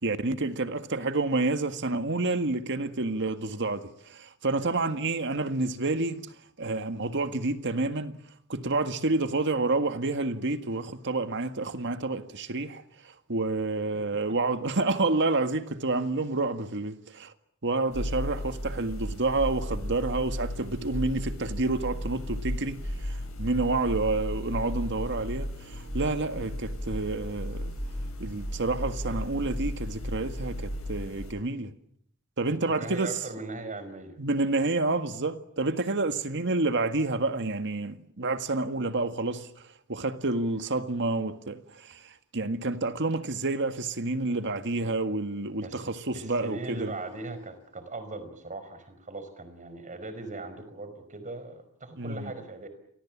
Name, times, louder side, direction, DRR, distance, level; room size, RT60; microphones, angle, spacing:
voice 1, 0.0-6.3 6.6-8.1 8.5-17.3 17.6-27.7 28.2-31.7 32.4-33.2 34.2-46.9 52.0-52.3, right 2 dB, 55° right, 1.8 m, -29 dB
sound 1, 17.9-31.3, equal, 75° left, 7.5 m, -35 dB
voice 2, 32.7-34.2 44.3-44.5 44.8-44.9 45.6-45.9 46.1-52.7, right 2 dB, 35° right, 4.8 m, -39 dB
30.0 x 24.0 x 7.4 m
head